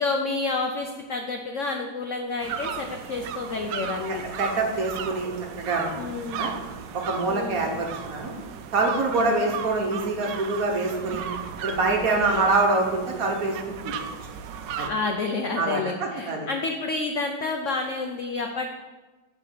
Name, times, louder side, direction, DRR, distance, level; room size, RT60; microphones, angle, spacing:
voice 1, 0.0-4.2 6.0-6.5 7.3-7.7 9.1-9.4 12.1-12.5 14.9-18.7, left 3 dB, 75° left, 3 dB, 0.7 m, -29 dB
sound 1, 2.4-14.9, right 7 dB, 75° right, 1.2 m, -35 dB
voice 2, 4.1-5.3 5.6-5.9 6.4-6.5 6.9-8.3 8.7-11.2 11.6-13.9 14.8-14.9 15.6-16.5, right 3 dB, 50° right, 1 dB, 1.3 m, -25 dB
8.6 x 3.7 x 6.8 m, 1.2 s
omnidirectional pair, 2.1 m